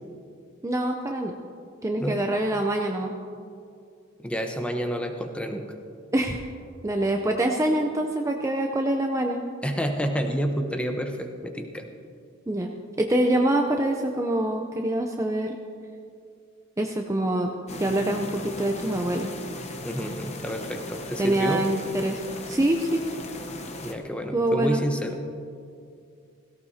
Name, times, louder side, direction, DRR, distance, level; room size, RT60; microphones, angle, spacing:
voice 1, 0.6-1.3 1.8-3.1 6.1-6.4 6.8-9.4 12.5-12.7 13.0-15.6 16.8-17.5 17.8-19.3 21.2-22.2 22.5-23.0 24.3-24.8, right 1 dB, 15° right, 2 dB, 0.6 m, -25 dB
voice 2, 4.2-5.6 9.6-11.9 19.8-21.6 23.8-25.2, equal, 5° left, 4 dB, 0.9 m, -29 dB
sound 1, 17.7-23.9, left 2 dB, 30° left, 0.9 m, -38 dB
17.0 x 17.0 x 2.8 m, 2.4 s
head